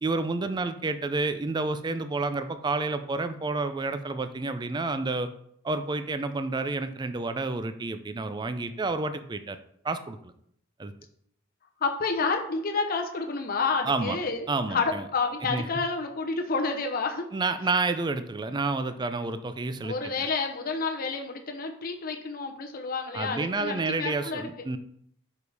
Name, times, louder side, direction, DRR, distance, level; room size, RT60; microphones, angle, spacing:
voice 1, 0.0-5.3 5.6-9.6 9.8-10.3 10.8-10.9 13.9-14.2 14.5-15.0 15.5-15.6 17.3-20.1 23.1-24.8, right 3 dB, 20° right, 10 dB, 0.4 m, -29 dB
voice 2, 11.8-17.3 19.8-24.5, left 4 dB, 45° left, 3 dB, 0.7 m, -29 dB
5.1 x 4.9 x 4.7 m, 0.69 s
head